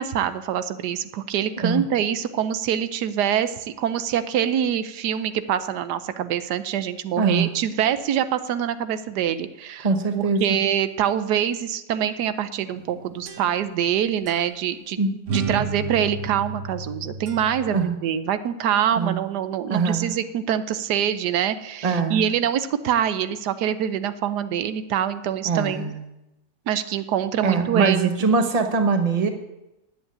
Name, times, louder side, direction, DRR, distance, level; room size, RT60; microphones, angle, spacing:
voice 1, 0.0-9.9 10.1-15.0 15.3-25.9 26.7-28.3, right 9 dB, 85° right, 13 dB, 1.3 m, -25 dB
voice 2, 7.2-7.5 9.8-10.4 15.0-15.1 17.7-18.0 19.0-19.2 19.7-20.1 21.8-22.3 25.4-26.0 27.4-29.3, right 4 dB, 25° right, 7 dB, 1.0 m, -22 dB
sound 1, 12.7-13.9 14.3-14.4 15.3-17.8, right 4 dB, 50° right, 1.3 m, -32 dB
9.8 x 8.0 x 8.7 m, 0.93 s
omnidirectional pair, 1.7 m